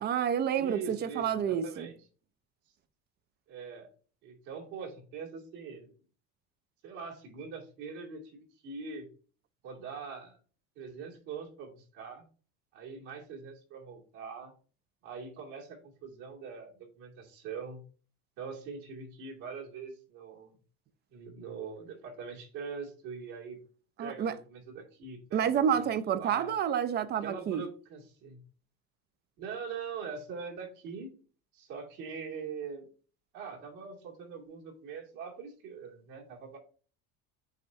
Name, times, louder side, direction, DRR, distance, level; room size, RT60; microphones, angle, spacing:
voice 1, 0.0-1.9 24.0-24.3 25.3-27.6, right 8 dB, 30° right, 0.5 m, -29 dB
voice 2, 0.6-2.0 3.5-3.9 4.2-5.9 6.8-9.1 9.6-10.4 10.8-12.2 12.7-14.5 15.0-17.8 18.4-20.5 21.1-23.6 24.0-26.6 27.2-28.4 29.4-31.1 31.5-32.9 33.3-36.6, right 5 dB, 70° right, 2.6 m, -42 dB
8.2 x 4.5 x 2.7 m
cardioid pair, 135°, 32 cm